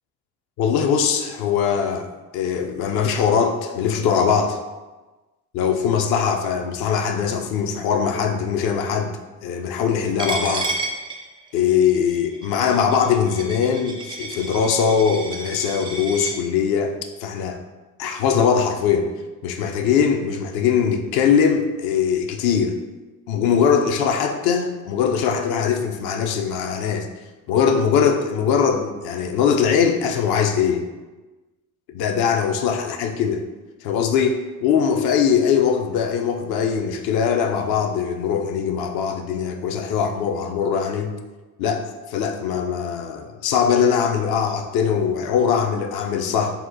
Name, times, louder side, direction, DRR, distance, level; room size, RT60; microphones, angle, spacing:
voice 1, 0.6-2.1 2.3-4.6 5.5-9.1 9.4-10.7 11.5-16.9 17.2-17.6 18.0-19.1 19.4-22.8 23.3-27.1 27.5-30.9 31.9-33.4 33.8-41.1 41.6-46.6, left 7 dB, 50° left, 5 dB, 0.5 m, -21 dB
Coin (dropping), 10.2-16.4, right 2 dB, 10° right, 0.4 m, -31 dB
4.1 x 2.1 x 2.6 m, 1.2 s
figure-of-eight pair, 55°, 50 cm